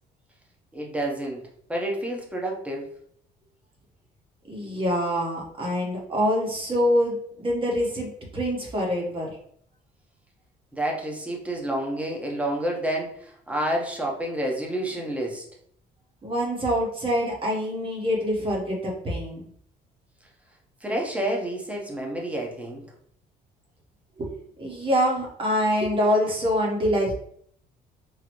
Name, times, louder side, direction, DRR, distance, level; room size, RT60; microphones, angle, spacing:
voice 1, 0.7-1.4 1.7-2.9 10.7-15.4 20.8-22.8, right 1 dB, 10° right, -1 dB, 0.8 m, -29 dB
voice 2, 4.5-9.4 16.2-19.5 24.2-24.3 24.6-27.1, equal, 30° right, -2 dB, 1.2 m, -25 dB
3.8 x 2.0 x 3.0 m, 0.63 s
cardioid pair, 110°, 17 cm